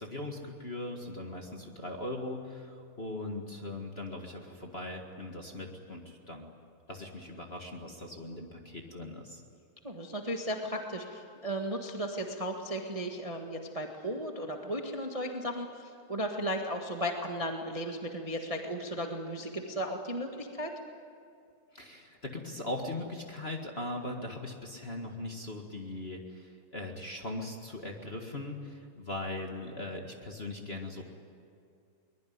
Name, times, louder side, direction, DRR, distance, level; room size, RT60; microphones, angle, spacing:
voice 1, 0.0-6.5 6.9-9.4 21.7-31.0, left 2 dB, 30° left, 2 dB, 1.2 m, -40 dB
voice 2, 9.8-15.8 16.1-20.7, equal, 55° right, 2 dB, 0.4 m, -35 dB
23.0 x 21.0 x 9.5 m, 2.4 s
omnidirectional pair, 3.9 m